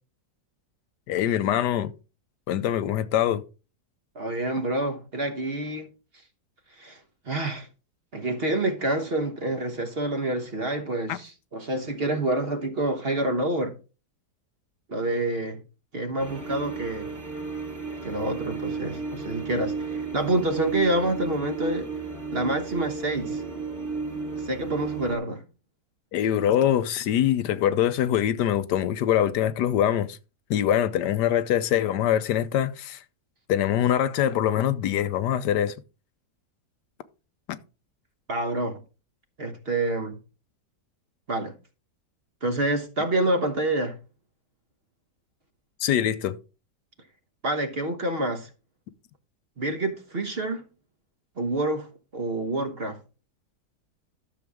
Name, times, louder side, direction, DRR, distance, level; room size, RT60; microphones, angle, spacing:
voice 1, 1.1-1.9 2.5-3.4 11.1-11.2 26.1-30.2 30.5-33.0 33.5-35.7 37.5-37.6 45.8-46.4, left 10 dB, 85° left, 1.3 m, -23 dB
voice 2, 4.1-5.9 6.8-7.0 7.3-7.7 8.1-13.7 14.9-15.6 15.9-17.1 18.0-21.9 22.3-23.4 24.4-25.4 38.3-38.8 39.4-40.2 41.3-41.5 42.4-44.0 47.4-48.5 49.6-50.6 51.4-51.9 52.1-53.0, right 1 dB, 40° right, 1.2 m, -27 dB
sound 1, 16.2-25.2, right 4 dB, 25° right, 2.8 m, -33 dB
12.5 x 6.9 x 3.5 m
omnidirectional pair, 1.8 m